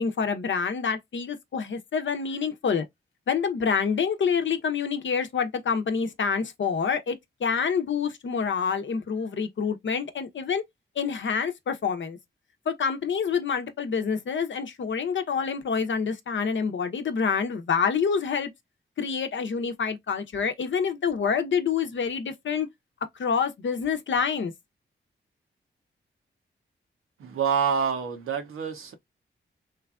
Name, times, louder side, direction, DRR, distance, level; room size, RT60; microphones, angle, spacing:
voice 1, 0.0-2.8 3.3-10.6 11.0-12.2 12.7-18.5 19.0-22.7 23.2-24.5, left 6 dB, 65° left, 0.7 m, -27 dB
voice 2, 27.2-28.9, right 6 dB, 90° right, 0.7 m, -27 dB
3.1 x 2.3 x 2.4 m
cardioid pair, 50°, 21 cm